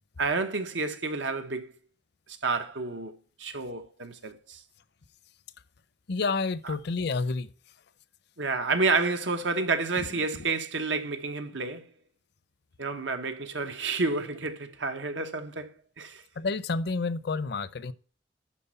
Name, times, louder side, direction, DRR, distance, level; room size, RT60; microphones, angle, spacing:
voice 1, 0.2-1.7 2.4-3.1 3.4-4.6 8.4-11.9 12.8-15.7 16.0-16.2, right 3 dB, 90° right, 1.1 m, -29 dB
voice 2, 6.1-7.5 10.0-10.1 10.4-10.5 16.4-17.9, left 4 dB, 65° left, 0.6 m, -29 dB
11.0 x 4.3 x 5.4 m
head